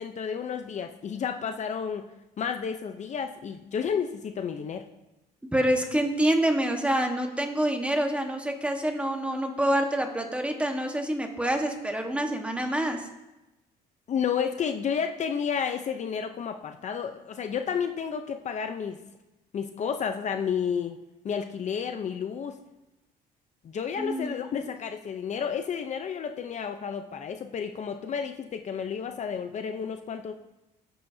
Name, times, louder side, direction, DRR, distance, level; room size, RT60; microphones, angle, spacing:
voice 1, 0.0-2.1 2.4-4.9 14.1-19.0 19.5-21.0 21.2-22.6 23.6-30.3, left 7 dB, 45° left, 6 dB, 0.7 m, -31 dB
voice 2, 5.5-13.0 24.0-24.5, right 1 dB, 5° right, 3 dB, 1.4 m, -27 dB
17.0 x 8.7 x 2.8 m, 1.0 s
cardioid pair, 110°, 17 cm